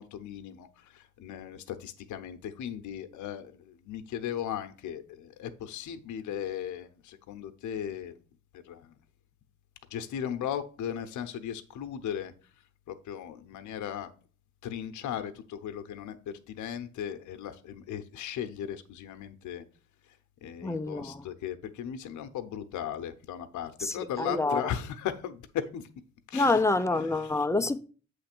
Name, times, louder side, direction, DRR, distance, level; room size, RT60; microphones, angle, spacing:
voice 1, 0.0-8.1 8.6-8.9 9.9-12.3 12.9-14.1 14.6-16.2 16.5-19.6 20.4-25.8 26.3-26.6 26.9-27.5, left 9 dB, 75° left, 0.8 m, -37 dB
voice 2, 20.6-21.3 23.8-24.7 26.3-27.8, left 2 dB, 10° left, 0.5 m, -27 dB
7.8 x 3.2 x 6.0 m
cardioid pair, 90°, 30 cm